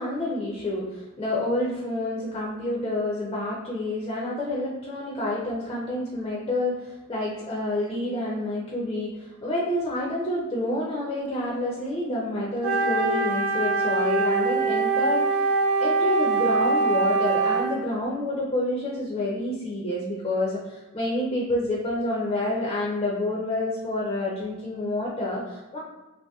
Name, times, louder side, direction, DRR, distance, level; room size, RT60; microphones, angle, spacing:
voice 1, 0.0-15.5 15.8-25.8, left 1 dB, 25° left, -4 dB, 0.4 m, -28 dB
Wind instrument woodwind instrument, 12.6-17.8, right 3 dB, 60° right, 0.4 m, -23 dB
2.8 x 2.5 x 2.2 m, 1.1 s
head